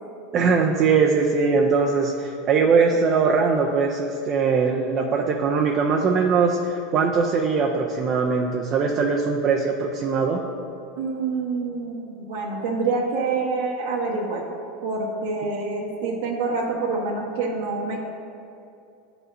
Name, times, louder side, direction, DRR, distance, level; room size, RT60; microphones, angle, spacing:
voice 1, 0.3-10.4, right 5 dB, 35° right, 0 dB, 0.5 m, -21 dB
voice 2, 11.0-14.4 14.8-18.0, right 4 dB, 85° right, -4 dB, 1.1 m, -26 dB
9.8 x 4.8 x 2.6 m, 2.6 s
supercardioid pair, 135°, 0 cm